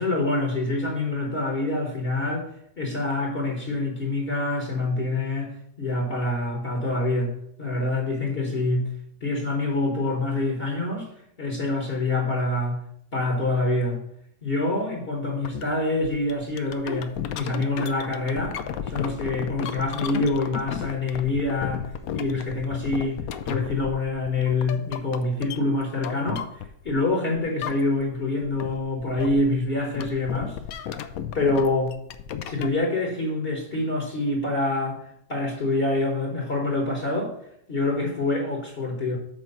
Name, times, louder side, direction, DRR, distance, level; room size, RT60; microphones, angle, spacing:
voice 1, 0.0-2.5 2.8-7.3 7.6-8.9 9.2-11.1 11.4-12.8 13.1-14.0 14.4-18.6 18.9-21.9 22.1-30.6 31.3-32.0 32.5-37.3 37.7-39.2, left 2 dB, 40° left, -1 dB, 1.3 m, -26 dB
sound 1, 15.4-15.6 16.0-27.1 27.3-28.2 28.4-32.8, left 9 dB, 70° left, 1.0 m, -33 dB
7.3 x 4.5 x 5.4 m, 0.73 s
omnidirectional pair, 1.8 m